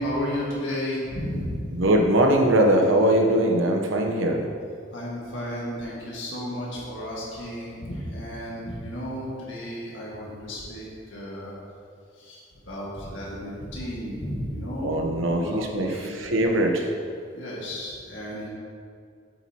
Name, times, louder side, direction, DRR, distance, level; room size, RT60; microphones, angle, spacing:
voice 1, 0.0-1.7 4.9-11.5 12.2-12.4 12.7-16.1 17.3-18.5, equal, 75° left, -5 dB, 1.8 m, -33 dB
voice 2, 1.7-4.5 14.8-16.9, right 1 dB, 90° right, 2 dB, 0.9 m, -21 dB
8.2 x 7.9 x 2.9 m, 2.2 s
head